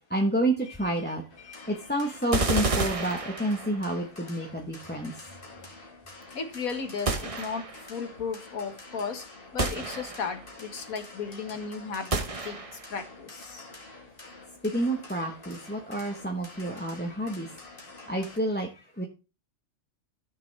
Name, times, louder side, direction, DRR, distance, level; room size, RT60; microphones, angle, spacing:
voice 1, 0.1-5.3 14.6-17.6 17.9-19.0, right 1 dB, 10° left, 1 dB, 1.1 m, -29 dB
sound 1, 1.3-18.4, left 3 dB, 40° left, 2.4 m, -48 dB
sound 2, 2.3-4.0 7.1-7.9 9.6-10.5 12.1-13.0, right 3 dB, 30° right, 0.9 m, -30 dB
voice 2, 6.3-7.6 7.9-9.2 9.5-12.6 12.9-13.7, left 5 dB, 85° left, 7 dB, 2.1 m, -35 dB
14.5 x 6.5 x 3.4 m, 0.31 s
omnidirectional pair, 1.4 m